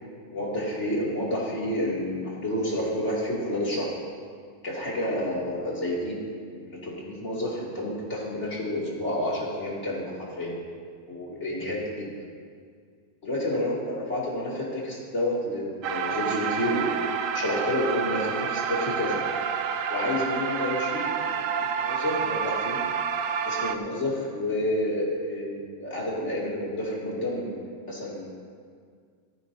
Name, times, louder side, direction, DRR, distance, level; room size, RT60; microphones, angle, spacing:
voice 1, 0.3-3.9 4.6-6.2 6.5-10.6 11.1-12.2 13.2-19.2 19.9-21.2 21.5-22.8 23.4-28.3, left 1 dB, 45° left, -5 dB, 3.0 m, -30 dB
sound 1, 15.8-23.8, right 7 dB, 65° right, 0.9 m, -29 dB
16.5 x 14.0 x 2.8 m, 2.1 s
omnidirectional pair, 1.7 m